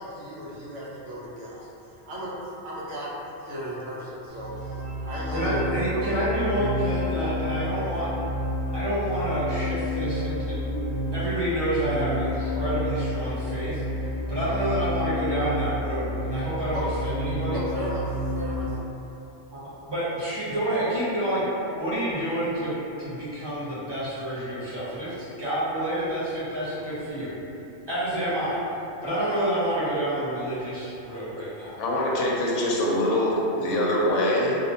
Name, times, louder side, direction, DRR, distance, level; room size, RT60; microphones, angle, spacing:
voice 1, 0.0-1.6 2.1-2.3 2.6-3.1 3.4-6.0 10.4-11.1 16.1-16.8 17.5-18.8 19.0-19.2 26.8-27.1 27.4-27.7, right 1 dB, 90° right, -6 dB, 1.0 m, -36 dB
sound 1, 4.3-18.6, left 1 dB, 55° left, 0.9 m, -30 dB
voice 2, 5.3-8.1 8.7-10.7 11.1-13.8 14.3-17.6 19.5-21.4 21.8-27.3 27.9-28.6 29.0-31.8, right 1 dB, 40° right, -12 dB, 0.3 m, -28 dB
voice 3, 31.8-34.6, left 1 dB, 90° left, -4 dB, 0.9 m, -24 dB
2.7 x 2.0 x 2.7 m, 2.9 s
omnidirectional pair, 1.2 m